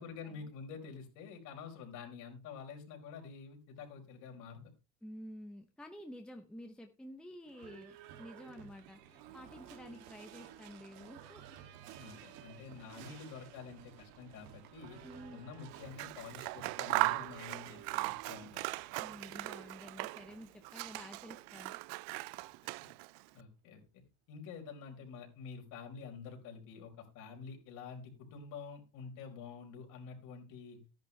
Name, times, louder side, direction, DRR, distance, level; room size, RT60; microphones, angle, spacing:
voice 1, 0.0-4.7 12.0-15.0 15.3-18.7 22.8-22.9 23.3-24.0 24.3-30.8, left 5 dB, 50° left, 2 dB, 4.4 m, -48 dB
voice 2, 5.0-11.4 15.0-15.4 19.0-21.8, equal, ahead, 5 dB, 0.8 m, -50 dB
Livestock farm animals working animals / Bell, 7.4-23.3, right 10 dB, 90° right, 2.4 m, -55 dB
Scissors, 15.8-20.3 20.6-23.2, right 24 dB, 65° right, 0.5 m, -38 dB
14.5 x 10.5 x 3.3 m, 0.29 s
cardioid pair, 175°, 38 cm